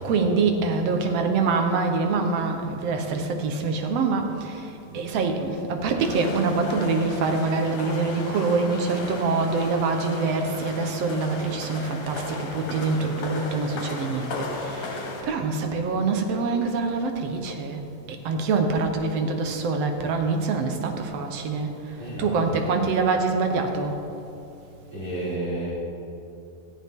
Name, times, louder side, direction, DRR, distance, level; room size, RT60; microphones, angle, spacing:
voice 1, 0.0-4.6 4.9-17.8 18.3-21.7 22.2-23.9, right 4 dB, 65° right, 5 dB, 1.7 m, -25 dB
sound 1, 6.0-15.2, left 2 dB, 85° left, 3.9 m, -35 dB
voice 2, 22.0-22.6 24.9-25.7, right 1 dB, 30° right, -12 dB, 4.7 m, -32 dB
18.5 x 14.0 x 3.7 m, 2.8 s
omnidirectional pair, 4.0 m